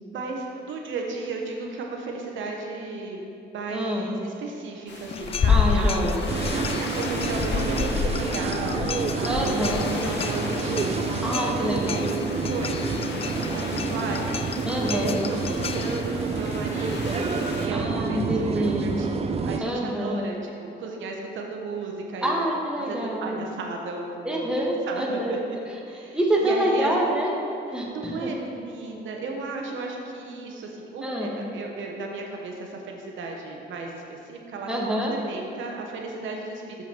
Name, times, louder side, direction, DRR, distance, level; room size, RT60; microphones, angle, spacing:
voice 1, 0.1-3.2 3.5-6.1 6.8-9.5 9.8-11.6 11.9-18.2 18.5-22.4 22.8-24.5 24.9-25.4 25.9-26.9 27.9-36.8, right 3 dB, 75° right, 1 dB, 1.1 m, -35 dB
voice 2, 3.7-4.1 5.5-6.2 9.2-9.9 11.2-12.0 14.7-15.2 17.7-18.9 19.6-20.2 22.2-23.4 24.2-25.4 26.1-27.3 27.7-28.3 31.0-31.3 34.7-35.1, right 1 dB, 5° right, -3 dB, 1.5 m, -26 dB
sound 1, 4.9-17.7, left 2 dB, 60° left, 1.2 m, -37 dB
sound 2, 5.1-16.0, left 6 dB, 30° left, 0.4 m, -29 dB
sound 3, 6.3-19.6, right 4 dB, 30° right, 0.5 m, -28 dB
7.1 x 5.6 x 6.0 m, 2.6 s
cardioid pair, 90°, 20 cm